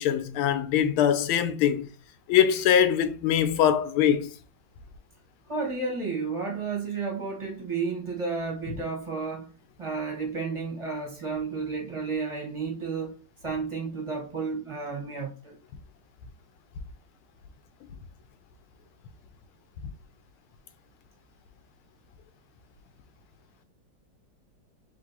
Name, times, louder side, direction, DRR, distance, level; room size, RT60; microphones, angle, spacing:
voice 1, 0.0-1.9 2.3-4.3, left 9 dB, 85° left, 1.5 m, -22 dB
voice 2, 5.5-9.5 9.8-13.1 13.4-15.5, right 4 dB, 20° right, 1.0 m, -32 dB
3.6 x 3.3 x 4.0 m
omnidirectional pair, 2.2 m